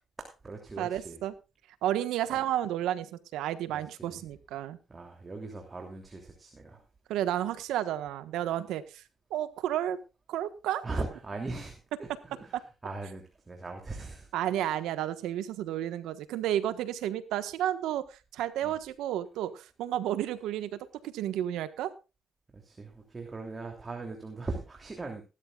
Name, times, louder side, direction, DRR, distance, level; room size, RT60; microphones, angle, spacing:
voice 1, 0.2-1.2 2.3-2.5 3.7-4.2 4.9-6.8 10.8-14.3 14.6-14.8 18.6-18.8 22.5-25.2, right 3 dB, 25° right, 2 dB, 3.0 m, -40 dB
voice 2, 0.8-1.3 1.8-4.8 7.1-9.0 9.3-10.0 10.3-10.8 14.3-20.8 21.0-21.9, right 12 dB, 90° right, 12 dB, 1.3 m, -31 dB
19.0 x 12.5 x 2.4 m, 0.29 s
cardioid pair, 90°, 0 cm